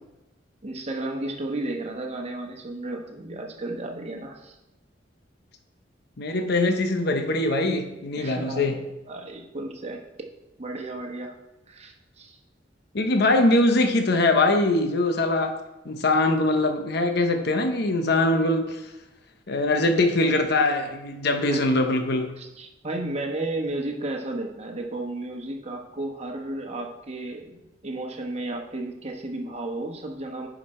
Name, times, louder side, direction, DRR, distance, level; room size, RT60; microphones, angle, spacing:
voice 1, 0.6-4.6 8.2-10.0 10.6-11.4 11.7-12.4 21.4-21.8 22.4-27.6 27.8-30.5, right 2 dB, 35° right, 2 dB, 1.1 m, -33 dB
voice 2, 6.2-8.8 12.9-15.5 15.8-18.9 19.5-22.3, left 2 dB, 60° left, 5 dB, 0.8 m, -22 dB
10.0 x 5.0 x 4.3 m, 0.99 s
head